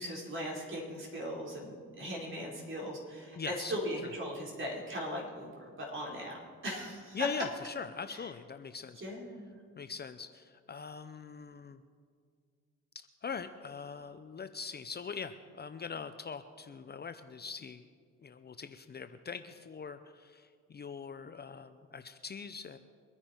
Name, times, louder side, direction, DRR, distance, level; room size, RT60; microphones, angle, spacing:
voice 1, 0.0-6.3 6.6-7.2 8.1-8.2 9.0-9.6, equal, 40° right, -2 dB, 4.5 m, -39 dB
voice 2, 3.3-3.7 4.0-4.1 7.1-9.0 9.8-11.8 13.2-17.9 18.2-22.8, left 6 dB, 35° left, 10 dB, 0.6 m, -42 dB
23.5 x 9.9 x 4.5 m, 2.1 s
cardioid pair, 90°, 30 cm